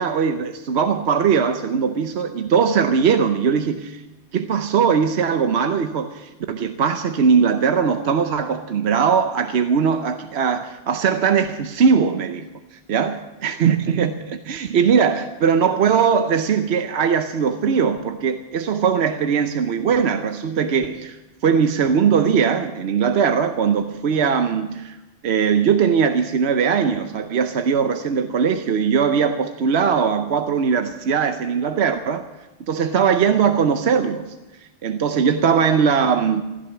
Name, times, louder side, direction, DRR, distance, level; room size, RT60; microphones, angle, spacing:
voice 1, 0.0-4.0 4.3-12.5 12.9-25.0 25.2-32.3 32.7-34.4 34.8-36.4, right 6 dB, 70° right, 8 dB, 1.0 m, -20 dB
16.5 x 12.0 x 7.0 m, 1.1 s
omnidirectional pair, 1.1 m